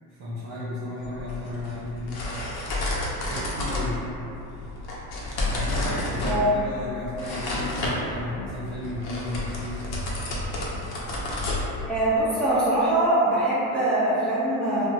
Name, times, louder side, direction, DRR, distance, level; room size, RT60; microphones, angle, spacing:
voice 1, 0.1-2.2 3.2-4.1 5.5-9.9, left 1 dB, 55° right, -8 dB, 0.8 m, -34 dB
sound 1, 1.0-12.2, left 1 dB, 55° left, 0.7 m, -31 dB
voice 2, 11.8-14.9, right 1 dB, ahead, -10 dB, 0.8 m, -23 dB
2.8 x 2.2 x 2.7 m, 2.8 s
supercardioid pair, 85°, 46 cm